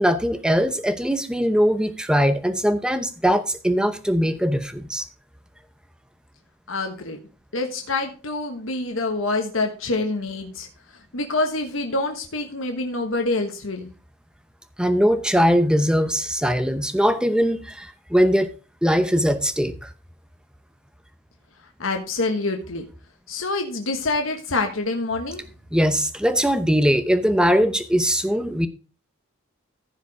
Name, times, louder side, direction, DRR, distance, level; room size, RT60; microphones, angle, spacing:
voice 1, 0.0-5.1 14.8-18.5 18.8-19.9 25.7-28.7, equal, 5° right, 11 dB, 0.8 m, -21 dB
voice 2, 6.7-7.2 7.5-10.7 11.1-13.9 21.8-22.9 23.3-25.4, left 2 dB, 75° left, 4 dB, 1.4 m, -26 dB
14.5 x 5.0 x 4.8 m, 0.35 s
head